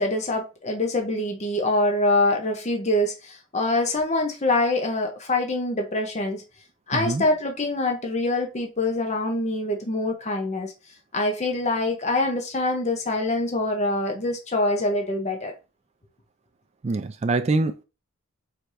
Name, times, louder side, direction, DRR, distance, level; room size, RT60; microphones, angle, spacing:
voice 1, 0.0-6.4 6.9-10.7 11.1-15.5, left 2 dB, 30° left, 0.7 m, -25 dB
voice 2, 6.9-7.2 16.8-17.8, right 3 dB, 30° right, 0.3 m, -24 dB
4.7 x 3.4 x 2.6 m
head